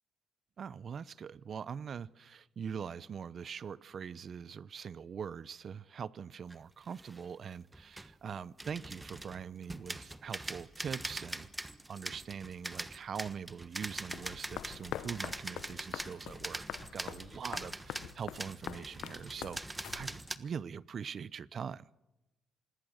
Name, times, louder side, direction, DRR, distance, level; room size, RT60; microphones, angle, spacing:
voice 1, 0.6-21.9, right 7 dB, 50° right, 0.8 m, -43 dB
sound 1, 6.5-6.6 6.8-7.3 7.7-8.2 8.6-20.4, right 2 dB, 15° right, 1.3 m, -43 dB
sound 2, 14.1-20.4, left 12 dB, 80° left, 0.7 m, -45 dB
27.0 x 21.0 x 6.5 m
cardioid pair, 90°, 0 cm